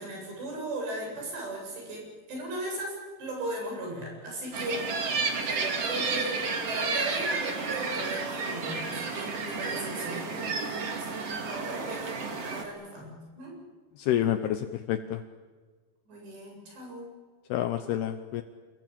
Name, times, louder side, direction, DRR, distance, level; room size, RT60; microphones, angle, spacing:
voice 1, 0.0-13.5 16.1-17.1, right 1 dB, 75° right, 0 dB, 10.0 m, -37 dB
sound 1, 4.5-12.6, right 4 dB, 40° right, 3.0 m, -32 dB
voice 2, 14.0-15.2 17.5-18.4, left 11 dB, 75° left, 8 dB, 2.8 m, -28 dB
28.5 x 21.5 x 8.9 m, 1.5 s
omnidirectional pair, 4.9 m